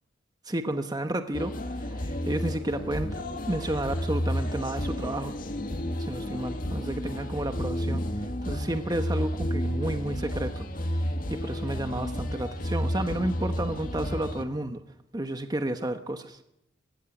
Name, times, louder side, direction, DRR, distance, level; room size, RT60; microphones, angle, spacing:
voice 1, 0.5-3.1 3.5-5.3 6.0-8.0 8.4-14.8 15.1-16.4, right 1 dB, 20° right, 7 dB, 1.1 m, -31 dB
sound 1, 1.3-14.4, equal, 50° left, 1.9 m, -31 dB
21.5 x 16.5 x 9.9 m, 0.84 s
head